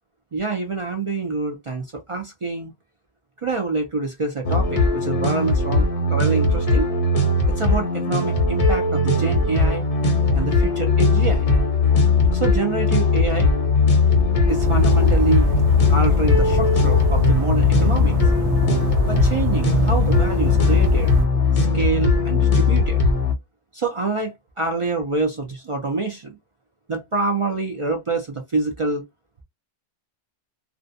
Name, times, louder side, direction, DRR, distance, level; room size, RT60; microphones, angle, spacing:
voice 1, 0.3-2.7 3.4-6.9 7.5-9.8 10.3-11.5 12.3-13.5 14.5-15.5 15.9-18.2 19.1-21.1 21.5-23.0 23.7-26.3 26.9-29.0, right 3 dB, 55° right, 0.3 m, -26 dB
sound 1, 4.4-23.3, left 3 dB, 45° left, 0.5 m, -19 dB
sound 2, 14.5-21.3, equal, 75° right, 0.8 m, -24 dB
2.5 x 2.2 x 2.5 m
omnidirectional pair, 1.2 m